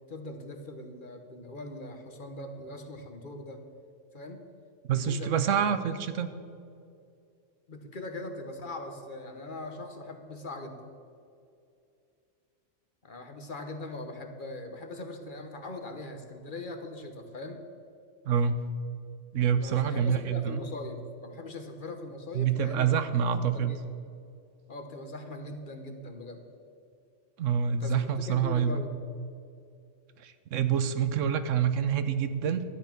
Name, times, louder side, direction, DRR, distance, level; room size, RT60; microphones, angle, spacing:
voice 1, 0.1-3.6 4.1-4.4 4.9-5.5 7.7-10.8 13.0-17.6 19.6-23.0 23.3-23.8 24.7-26.4 27.8-28.0 28.3-29.0, left 2 dB, 45° left, 5 dB, 1.2 m, -40 dB
voice 2, 4.8-6.3 18.2-18.6 19.3-20.6 22.3-23.8 27.4-28.8 30.2-32.6, right 7 dB, 85° right, 11 dB, 1.1 m, -27 dB
12.5 x 9.5 x 5.9 m, 2.5 s
omnidirectional pair, 1.3 m